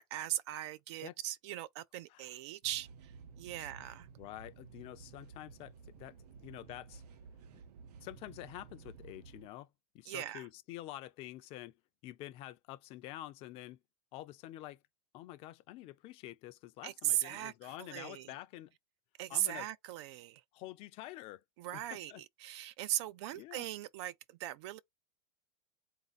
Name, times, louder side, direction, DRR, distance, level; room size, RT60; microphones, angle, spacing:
voice 1, 0.0-4.1 10.1-10.5 16.8-18.3 19.2-20.4 21.6-24.8, right 13 dB, 45° right, 0.4 m, -39 dB
sound 1, 2.6-9.5, right 5 dB, 80° right, 0.7 m, -54 dB
voice 2, 4.2-6.2 6.4-7.0 8.0-9.7 9.9-11.7 12.0-13.8 14.1-14.8 15.1-18.7 19.3-19.7 20.5-21.4 21.7-22.2 23.4-23.6, left 15 dB, 30° left, 0.5 m, -48 dB
4.0 x 2.6 x 4.0 m
supercardioid pair, 160°, 20 cm